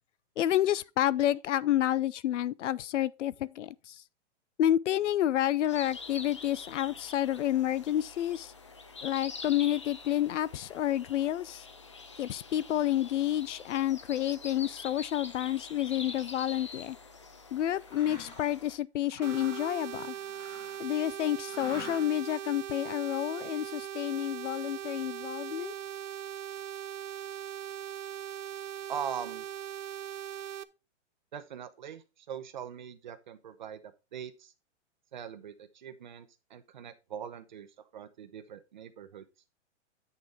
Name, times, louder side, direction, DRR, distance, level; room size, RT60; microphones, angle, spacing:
voice 1, 0.4-4.0 4.6-8.5 9.0-11.7 12.2-17.0 17.5-20.2 20.8-25.7, left 12 dB, 75° left, 0.6 m, -29 dB
sound 1, 5.7-18.8, left 4 dB, 25° left, 0.4 m, -46 dB
Mechanisms, 17.8-18.5 19.0-20.9 21.5-22.3, left 2 dB, 10° left, 1.2 m, -47 dB
sound 2, 19.2-30.6, right 10 dB, 80° right, 0.7 m, -40 dB
voice 2, 28.9-29.4 31.3-34.5 35.1-37.7 37.9-39.3, right 8 dB, 40° right, 0.7 m, -42 dB
8.4 x 6.6 x 3.4 m
hypercardioid pair, 175°, 36 cm